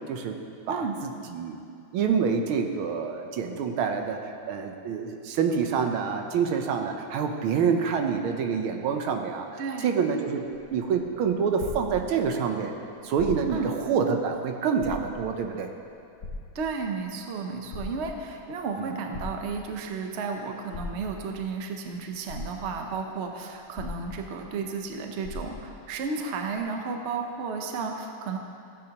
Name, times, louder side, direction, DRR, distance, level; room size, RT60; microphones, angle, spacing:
voice 1, 1.9-12.7 13.0-15.7 18.8-19.0, right 6 dB, 85° right, 4 dB, 1.6 m, -27 dB
voice 2, 9.6-9.9 13.5-13.7 16.5-28.4, right 4 dB, 65° right, 3 dB, 0.6 m, -33 dB
sound 1, 10.7-12.5 13.1-13.7 14.2-14.3 14.7-15.5 16.2-17.0 17.5-18.4 19.1-19.9 20.7-21.4 21.9-22.0 22.3-23.0 23.7-24.6 24.8-24.9 25.2-25.9 26.6-26.7, left 3 dB, 45° left, 1.1 m, -40 dB
15.0 x 9.0 x 2.9 m, 2.5 s
omnidirectional pair, 2.2 m